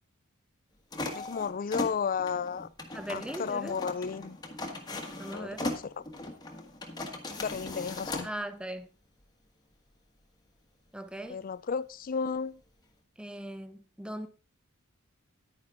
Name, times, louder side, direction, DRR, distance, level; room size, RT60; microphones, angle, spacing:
sound 1, 0.9-8.3, left 2 dB, 20° left, 1.5 m, -38 dB
voice 1, 1.1-2.7 3.1-4.4 5.3-5.9 7.4-8.3 11.3-12.6, left 6 dB, 45° left, 0.4 m, -33 dB
voice 2, 2.9-3.8 5.2-5.7 8.2-8.9 10.9-11.4 13.2-14.3, right 1 dB, 5° right, 0.8 m, -39 dB
10.5 x 9.5 x 3.6 m
head